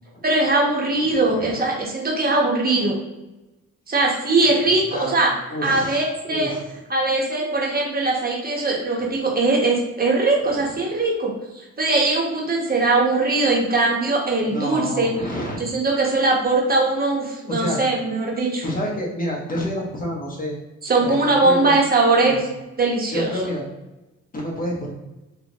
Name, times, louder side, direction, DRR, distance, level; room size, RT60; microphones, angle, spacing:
voice 1, 0.2-3.0 3.9-5.3 5.6-6.5 6.9-15.1 15.7-18.6 20.8-22.4 22.8-23.3, right 2 dB, 30° right, -2 dB, 1.1 m, -20 dB
voice 2, 1.2-1.6 4.7-6.7 14.4-15.6 17.5-17.8 18.6-20.6 21.0-21.2 21.4-21.8 22.2-22.4 23.1-23.7 24.3-24.9, equal, 30° left, -2 dB, 1.1 m, -29 dB
3.7 x 2.4 x 3.0 m, 1.0 s
cardioid pair, 90°, 30 cm